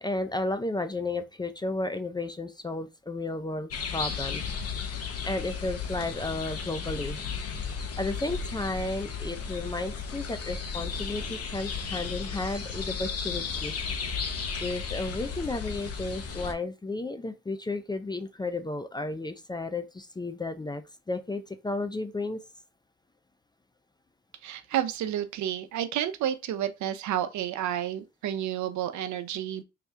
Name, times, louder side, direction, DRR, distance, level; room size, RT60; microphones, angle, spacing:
voice 1, 0.0-4.4 5.2-7.2 8.0-13.7 14.6-20.8 21.1-22.4, left 2 dB, 15° left, 0.4 m, -33 dB
sound 1, 3.7-16.5, left 5 dB, 50° left, 0.8 m, -34 dB
voice 2, 24.4-29.6, right 11 dB, 70° right, 0.6 m, -30 dB
3.2 x 3.0 x 3.5 m
cardioid pair, 90°, 30 cm